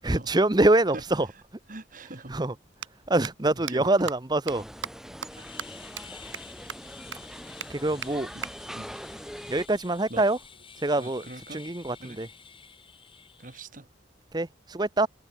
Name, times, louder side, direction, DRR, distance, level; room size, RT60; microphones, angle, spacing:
voice 1, 0.0-1.3 2.3-2.5 3.1-4.6 7.7-8.3 9.5-10.4 10.8-11.2 11.5-12.3 14.3-15.1, right 2 dB, 20° right, 0.8 m, -24 dB
voice 2, 1.7-2.4 3.7-3.9 8.3-8.9 10.1-10.2 11.0-11.6 12.0-12.2 13.4-13.9, right 2 dB, 45° right, 2.0 m, -42 dB
sound 1, 2.7-2.9 3.2-3.3 3.7-3.8 4.1-4.2 4.5-4.6 4.8-4.9 5.2-5.3 5.6-5.7 6.0-6.1 6.3-6.4 6.7-6.8 7.1-7.2 7.6-7.7 8.0-8.1 8.4-8.5 10.2-11.2, right 7 dB, 85° right, 3.0 m, -37 dB
sound 2, 4.5-9.7, equal, ahead, 5.6 m, -42 dB
sound 3, 5.3-13.7, left 6 dB, 30° left, 6.6 m, -50 dB
head